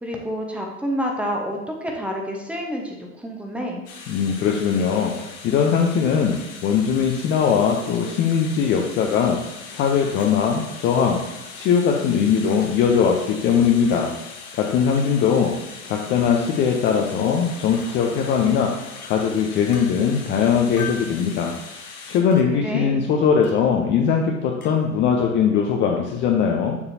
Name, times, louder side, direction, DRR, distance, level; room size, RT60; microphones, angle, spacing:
voice 1, 0.0-3.8 22.5-23.0, equal, 5° right, 0 dB, 1.0 m, -28 dB
sound 1, 3.9-22.2, left 4 dB, 45° left, 2.1 m, -40 dB
voice 2, 4.1-6.4 6.6-9.4 9.7-11.2 11.5-14.1 14.5-15.5 15.8-18.7 19.0-21.5 22.1-26.8, left 7 dB, 25° left, 1 dB, 0.7 m, -20 dB
Chink clink, 10.2-10.3 11.2-11.3 12.5-12.7 13.8-14.0 14.9-15.1 16.3-16.5 17.7-17.9 19.0-19.1 19.7-19.9 20.8-21.1 22.3-22.4 23.4-23.7 24.6-24.8, left 7 dB, 80° left, 1.1 m, -39 dB
7.0 x 6.7 x 2.7 m, 1.0 s
figure-of-eight pair, 95°, 44 cm